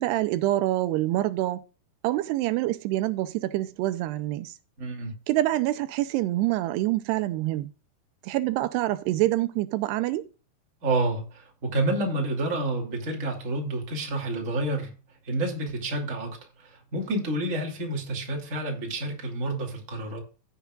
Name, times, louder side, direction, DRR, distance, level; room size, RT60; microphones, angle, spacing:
voice 1, 0.0-1.6 2.0-4.5 5.3-7.7 8.2-10.3, right 16 dB, 85° right, 2.7 m, -26 dB
voice 2, 4.8-5.2 10.8-14.9 15.2-20.2, right 2 dB, 25° right, 2.2 m, -29 dB
16.0 x 7.1 x 2.4 m
omnidirectional pair, 4.7 m